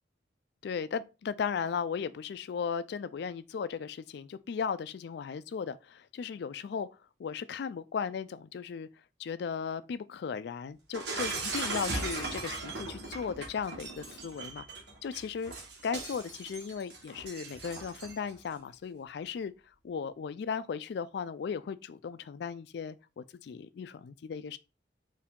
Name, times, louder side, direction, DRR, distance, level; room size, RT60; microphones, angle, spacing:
voice 1, 0.6-6.9 7.2-8.9 9.2-14.6 15.0-15.5 15.8-19.5 19.8-24.6, left 6 dB, 65° left, 0.3 m, -36 dB
Shatter, 10.9-18.3, right 3 dB, 70° right, 1.3 m, -38 dB
4.6 x 2.7 x 3.6 m
head